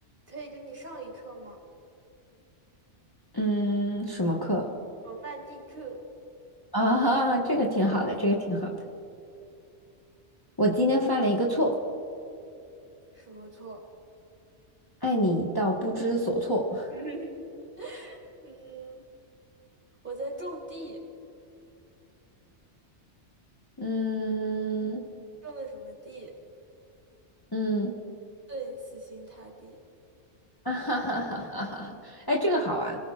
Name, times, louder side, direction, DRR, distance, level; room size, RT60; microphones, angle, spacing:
voice 1, 0.3-1.6 5.0-6.1 13.1-13.8 16.9-17.5 17.8-19.0 20.0-21.0 25.4-26.4 28.5-29.8, right 2 dB, 45° right, -1 dB, 3.3 m, -40 dB
voice 2, 3.3-4.7 6.7-8.7 10.6-11.8 15.0-16.9 23.8-25.0 27.5-27.9 30.6-33.0, equal, 20° left, -2 dB, 1.4 m, -26 dB
28.0 x 18.0 x 2.4 m, 2.7 s
omnidirectional pair, 1.2 m